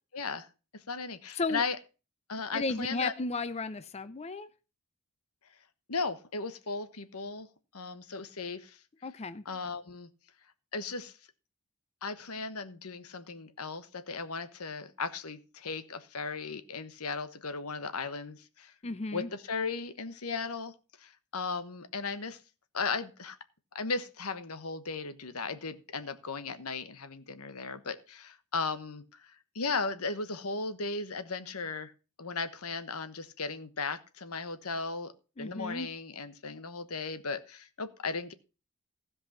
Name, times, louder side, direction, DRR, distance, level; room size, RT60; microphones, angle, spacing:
voice 1, 0.1-0.5 0.7-1.8 2.3-3.1 5.9-7.5 7.7-8.8 9.4-10.1 10.7-11.2 12.0-18.7 19.1-22.4 22.7-23.4 23.7-31.9 32.2-35.1 35.4-38.3, left 4 dB, 85° left, 1.2 m, -36 dB
voice 2, 2.5-4.5 9.0-9.4 18.8-19.3 35.4-35.9, left 3 dB, 30° left, 0.6 m, -34 dB
16.0 x 5.4 x 5.7 m
head